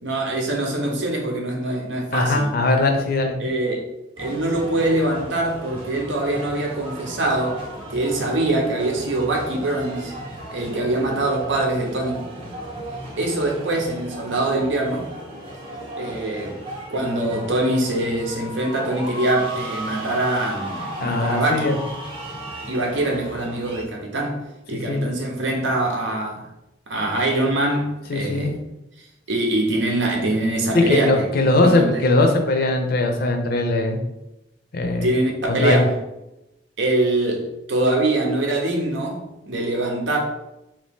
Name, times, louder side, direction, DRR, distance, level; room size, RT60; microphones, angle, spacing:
voice 1, 0.0-2.5 3.4-3.9 4.2-7.6 7.9-10.1 10.5-12.3 13.2-15.1 16.0-16.6 16.9-21.7 22.7-24.4 24.7-26.5 26.9-28.6 29.3-31.9 34.9-35.9 36.8-40.2, right 2 dB, 75° right, 0.7 m, -23 dB
voice 2, 2.1-3.4 21.0-21.8 24.7-25.1 28.1-28.5 30.7-34.0 34.7-35.1 35.5-35.9, left 2 dB, 55° left, 0.5 m, -20 dB
sound 1, 4.2-23.8, right 1 dB, 30° right, 0.7 m, -35 dB
2.9 x 2.7 x 3.5 m
head